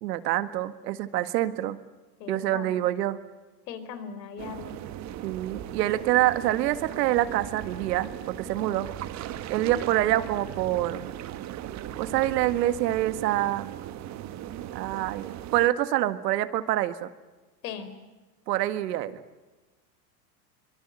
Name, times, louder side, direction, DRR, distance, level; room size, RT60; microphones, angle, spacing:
voice 1, 0.0-1.8 2.3-3.2 5.2-8.9 9.5-11.2 12.0-13.7 14.7-17.1 18.5-19.1, right 14 dB, 75° right, 11 dB, 1.9 m, -26 dB
voice 2, 2.2-2.7 3.7-4.8 17.6-17.9, left 7 dB, 75° left, 11 dB, 4.3 m, -38 dB
sound 1, 4.4-15.7, right 12 dB, 35° right, 1.4 m, -38 dB
24.0 x 23.0 x 8.9 m, 1.2 s
supercardioid pair, 135°, 50 cm